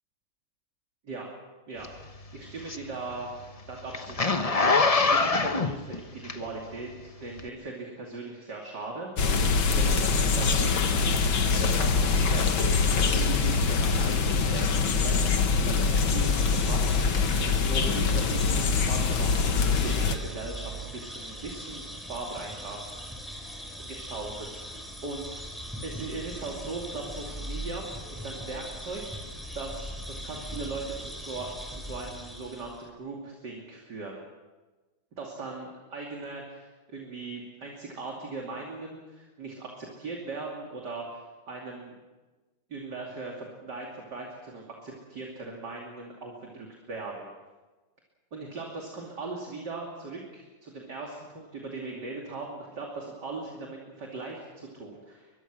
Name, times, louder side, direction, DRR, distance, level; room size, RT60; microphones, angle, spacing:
voice 1, 1.7-3.4 3.7-9.3 9.8-10.8 11.6-17.3 17.6-23.0 23.8-25.4 25.8-34.2 35.2-41.2 41.5-41.9 42.7-47.3 48.3-55.3, right 3 dB, 50° right, -1 dB, 3.3 m, -39 dB
Zipper (clothing), 1.8-6.8 7.3-7.5, left 4 dB, 40° left, 0.5 m, -25 dB
sound 1, 9.2-20.2, left 4 dB, 65° left, 2.3 m, -24 dB
sound 2, 15.1-32.9, equal, ahead, 4.0 m, -40 dB
23.5 x 22.5 x 6.3 m, 1.2 s
omnidirectional pair, 2.4 m